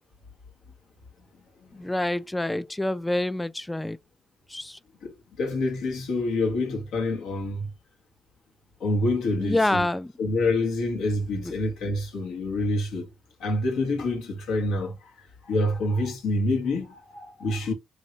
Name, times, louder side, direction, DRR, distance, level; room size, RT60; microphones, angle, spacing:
voice 1, 1.7-4.0 4.5-4.8 9.4-10.1 11.3-11.5, left 1 dB, 10° left, 0.3 m, -27 dB
voice 2, 5.0-7.7 8.8-9.8 10.2-13.1 13.4-15.0 15.5-17.7, left 2 dB, 75° left, 1.1 m, -27 dB
3.3 x 2.6 x 2.8 m
supercardioid pair, 65°, 0 cm